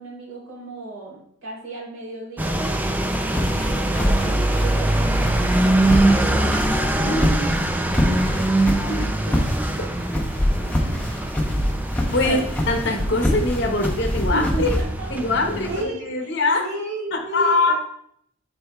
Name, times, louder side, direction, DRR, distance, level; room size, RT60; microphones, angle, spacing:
voice 1, 0.0-5.0 8.0-8.6 8.9-9.0 9.3-9.4 10.6-11.2 12.1-12.5 14.3-15.1 15.5-17.7, right 1 dB, 70° right, -4 dB, 2.5 m, -34 dB
sound 1, 2.4-15.8, right 1 dB, 10° right, 0.3 m, -23 dB
sound 2, 3.0-14.8, equal, 10° left, 0.7 m, -25 dB
voice 2, 6.9-7.5 9.0-9.1 12.1-12.4 12.7-14.8 15.1-16.7 17.1-17.7, left 2 dB, 55° left, 3 dB, 0.9 m, -23 dB
9.7 x 4.3 x 2.3 m, 0.68 s
head